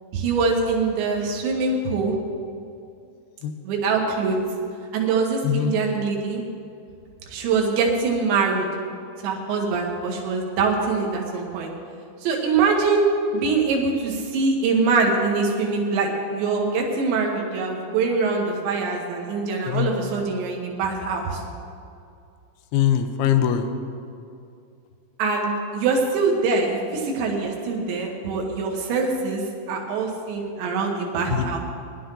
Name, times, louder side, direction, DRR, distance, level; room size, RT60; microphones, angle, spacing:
voice 1, 0.1-2.2 3.6-4.4 4.9-6.4 7.3-8.7 9.2-11.7 12.2-13.1 13.3-21.4 25.2-31.6, right 4 dB, 75° right, 0 dB, 3.9 m, -23 dB
voice 2, 22.7-23.7 31.3-31.6, left 10 dB, 80° left, 8 dB, 2.4 m, -22 dB
21.0 x 11.5 x 3.9 m, 2.5 s
omnidirectional pair, 5.3 m